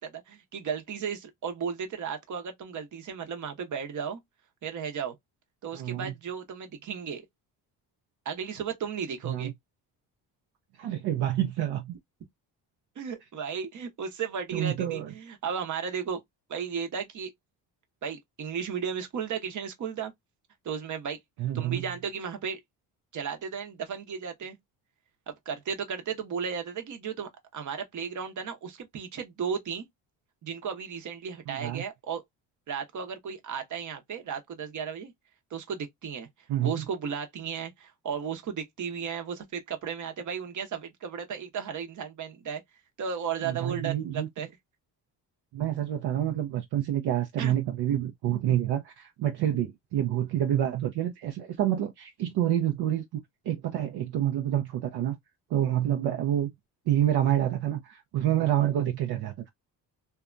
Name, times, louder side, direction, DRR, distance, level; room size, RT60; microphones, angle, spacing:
voice 1, 0.0-4.2 4.6-5.1 5.6-7.2 8.2-9.5 13.0-16.2 16.5-17.3 18.0-20.1 20.6-21.2 21.5-22.6 23.1-24.6 25.3-29.9 30.4-32.2 32.7-35.1 35.5-44.5 47.4-47.6, right 7 dB, 45° right, 0.8 m, -35 dB
voice 2, 5.7-6.1 9.3-9.5 10.8-12.0 14.5-15.1 21.4-21.8 31.5-31.8 36.5-36.8 43.4-44.3 45.5-53.0 53.5-55.1 55.5-56.5 56.9-59.5, right 11 dB, 65° right, 0.6 m, -28 dB
2.7 x 2.3 x 2.4 m
cardioid pair, 85°, 42 cm